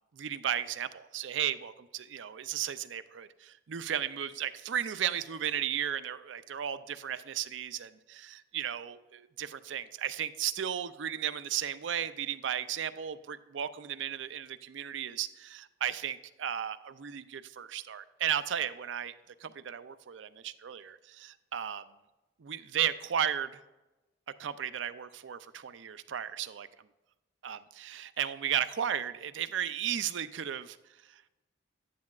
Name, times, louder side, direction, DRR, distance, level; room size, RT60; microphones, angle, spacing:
voice 1, 0.2-19.1 19.4-21.8 22.4-23.5 24.4-26.7 27.4-30.8, right 9 dB, 75° right, 12 dB, 0.5 m, -35 dB
12.0 x 9.4 x 2.4 m, 1.0 s
head